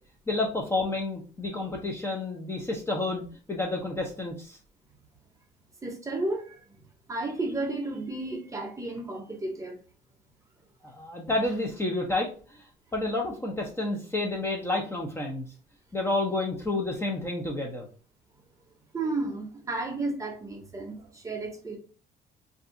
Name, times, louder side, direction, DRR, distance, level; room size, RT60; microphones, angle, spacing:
voice 1, 0.3-4.6 10.8-12.6 12.9-15.5 15.9-17.9, left 2 dB, 15° left, 0.6 m, -30 dB
voice 2, 5.8-6.6 7.1-9.8 18.9-21.8, right 2 dB, 20° right, 0.8 m, -32 dB
2.6 x 2.4 x 3.6 m
cardioid pair, 110°, 17 cm